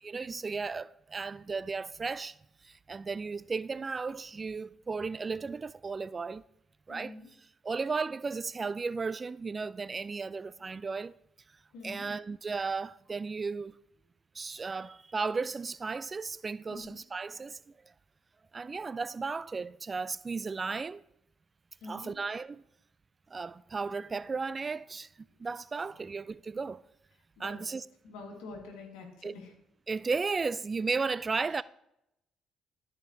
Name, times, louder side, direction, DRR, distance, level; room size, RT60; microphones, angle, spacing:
voice 1, 0.0-2.4 2.6-6.4 6.9-7.2 7.6-11.1 11.8-13.8 14.3-17.8 18.5-21.0 21.9-22.6 23.3-26.8 27.4-27.8 29.2-29.3 29.9-31.6, right 4 dB, 35° right, 0.3 m, -35 dB
voice 2, 6.9-7.3 11.7-12.1 16.7-16.9 21.8-22.1 26.0-26.1 27.4-27.6 28.0-29.5, left 3 dB, 80° left, 1.8 m, -46 dB
12.5 x 5.1 x 2.7 m
supercardioid pair, 60°, 0 cm